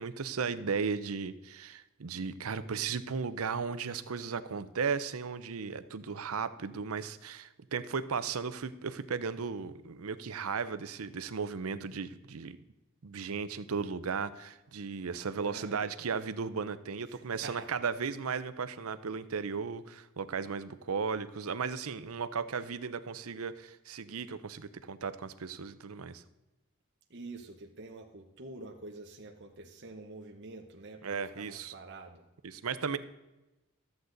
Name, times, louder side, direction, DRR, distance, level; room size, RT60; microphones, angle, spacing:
voice 1, 0.0-12.6 13.0-26.2 31.0-31.7 32.4-33.0, right 5 dB, 80° right, 13 dB, 0.7 m, -35 dB
voice 2, 15.4-15.8 17.1-17.8 27.1-32.2, right 2 dB, 50° right, 2 dB, 0.9 m, -47 dB
13.5 x 8.1 x 3.9 m, 1.0 s
head